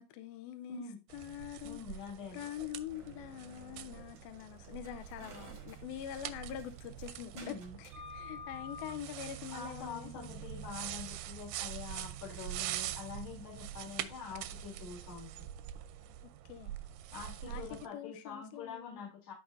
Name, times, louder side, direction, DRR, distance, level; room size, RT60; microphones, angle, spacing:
voice 1, 0.0-0.8 1.1-1.8 2.3-10.3 16.5-16.7 17.5-19.1, left 11 dB, 80° left, 2.4 m, -44 dB
voice 2, 0.7-1.0 1.6-2.4 7.3-7.8 9.5-15.3 17.1-19.3, left 5 dB, 45° left, 4.0 m, -45 dB
sound 1, 1.1-17.9, right 12 dB, 80° right, 2.1 m, -44 dB
sound 2, 2.9-10.3, left 2 dB, 50° right, 1.3 m, -52 dB
12.5 x 5.4 x 2.6 m
omnidirectional pair, 4.4 m